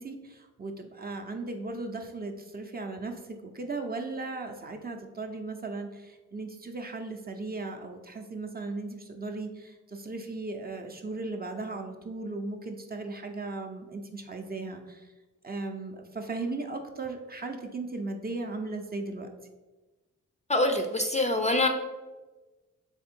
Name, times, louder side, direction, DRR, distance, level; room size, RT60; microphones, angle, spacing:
voice 1, 0.0-15.1 15.4-19.3, right 3 dB, 30° right, 3 dB, 0.6 m, -37 dB
voice 2, 20.5-21.7, left 2 dB, 20° left, 4 dB, 0.4 m, -25 dB
3.6 x 3.3 x 4.4 m, 1.2 s
cardioid pair, 80°, 32 cm